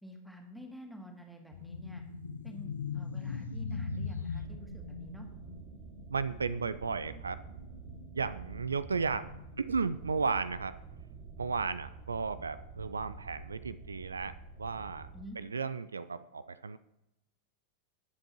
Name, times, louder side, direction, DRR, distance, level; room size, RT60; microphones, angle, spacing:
voice 1, 0.0-2.0 2.4-5.3 15.1-15.4, equal, ahead, 2 dB, 2.0 m, -49 dB
sound 1, 1.5-11.5 11.8-12.0 12.8-13.8, left 5 dB, 70° left, 0.7 m, -42 dB
sound 2, 4.4-15.2, right 6 dB, 35° right, 1.1 m, -49 dB
voice 2, 6.1-7.4 8.1-10.8 11.4-15.1 15.4-16.8, right 5 dB, 75° right, 14 dB, 0.4 m, -34 dB
19.5 x 7.7 x 3.0 m, 0.89 s
figure-of-eight pair, 90°, 0 cm